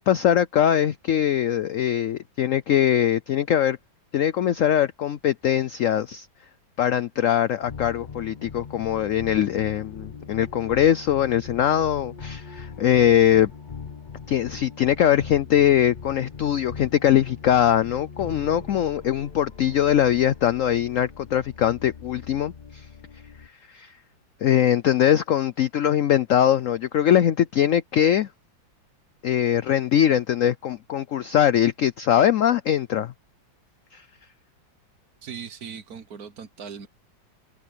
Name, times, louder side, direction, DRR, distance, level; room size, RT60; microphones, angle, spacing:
voice 1, 0.0-3.8 4.1-6.3 6.8-13.5 14.3-22.9 23.7-23.9 24.4-28.3 29.2-33.1 33.9-34.0, left 10 dB, 80° left, 0.7 m, -21 dB
sound 1, 7.6-23.5, left 5 dB, 35° left, 0.8 m, -40 dB
voice 2, 35.2-36.9, right 6 dB, 55° right, 1.4 m, -39 dB
omnidirectional pair, 2.1 m